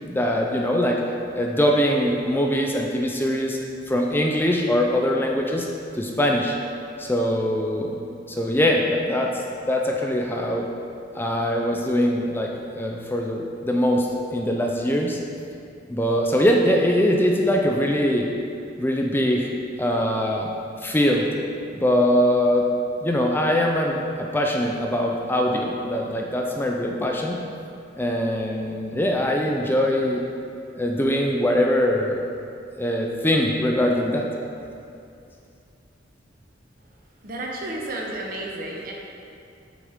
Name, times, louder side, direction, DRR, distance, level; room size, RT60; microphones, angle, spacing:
voice 1, 0.1-1.0 1.3-3.6 3.9-5.7 5.9-6.6 7.0-8.0 8.3-10.7 11.1-15.2 15.9-18.3 18.8-19.5 19.8-20.5 20.8-21.3 21.7-22.7 23.0-27.4 28.0-30.2 30.7-32.2 32.8-34.3, equal, 10° left, 0 dB, 0.4 m, -22 dB
voice 2, 37.2-38.9, right 1 dB, 50° right, -1 dB, 1.0 m, -32 dB
7.9 x 6.0 x 3.6 m, 2.5 s
head